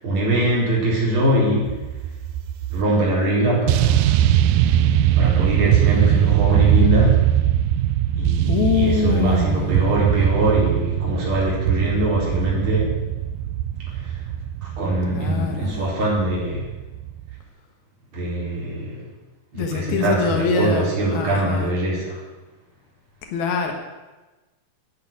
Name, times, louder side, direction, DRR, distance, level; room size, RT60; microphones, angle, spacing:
voice 1, 0.0-1.8 2.7-4.2 5.2-7.2 8.1-12.9 13.9-14.2 14.6-16.7 18.1-19.0 19.5-22.2, right 1 dB, 35° right, -5 dB, 5.0 m, -22 dB
sound 1, 1.6-2.8 3.7-17.4, right 11 dB, 80° right, 2.4 m, -21 dB
voice 2, 8.5-9.8 15.1-15.8 19.5-21.7 23.3-23.7, left 5 dB, 80° left, 4 dB, 3.4 m, -24 dB
11.0 x 10.5 x 9.5 m, 1.2 s
omnidirectional pair, 4.3 m